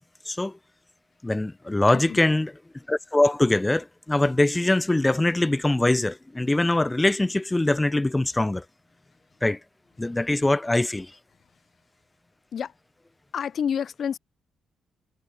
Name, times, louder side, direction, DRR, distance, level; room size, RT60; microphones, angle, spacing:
voice 1, 1.2-2.5 2.9-8.6 9.4-9.6 10.0-11.1, left 2 dB, 15° left, 0.7 m, -23 dB
voice 2, 1.9-2.2 12.5-12.7 13.3-14.2, left 8 dB, 65° left, 0.6 m, -29 dB
supercardioid pair, 60°, 0 cm